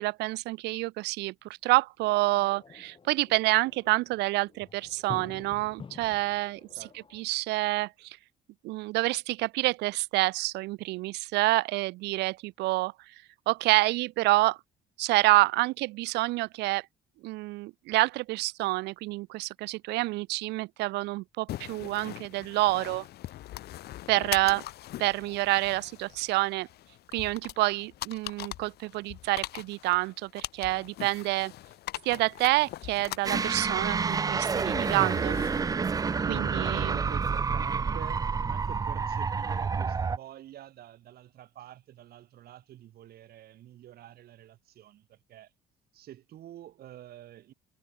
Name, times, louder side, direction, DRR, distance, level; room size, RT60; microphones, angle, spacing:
voice 1, 0.0-6.6 7.1-8.2 8.6-12.9 13.5-14.6 15.0-16.8 17.2-23.0 24.1-24.6 25.0-26.7 27.1-31.5 32.1-35.4 36.3-37.0, right 20 dB, 90° right, 1.9 m, -28 dB
sound 1, 2.0-7.2, left 5 dB, 30° left, 5.3 m, -48 dB
sound 2, 21.5-37.3, left 14 dB, 70° left, 4.3 m, -42 dB
voice 2, 24.1-24.6 36.2-45.5 45.9-47.5, right 12 dB, 65° right, 6.7 m, -48 dB
sound 3, 33.2-40.2, right 5 dB, 20° right, 0.5 m, -29 dB
cardioid pair, 110°, 17 cm